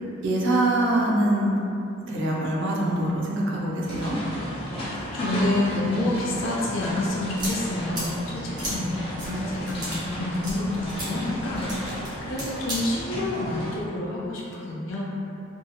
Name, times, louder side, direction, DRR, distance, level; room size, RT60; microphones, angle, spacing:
voice 1, 0.2-1.5 2.1-4.2 9.2-9.5, right 1 dB, 60° right, -4 dB, 0.5 m, -24 dB
sound 1, 3.8-13.8, left 1 dB, 25° left, 0.7 m, -34 dB
voice 2, 5.1-15.0, left 2 dB, 65° left, -4 dB, 0.4 m, -28 dB
sound 2, 6.9-12.8, equal, 20° right, 0.7 m, -36 dB
2.7 x 2.6 x 2.3 m, 2.7 s
head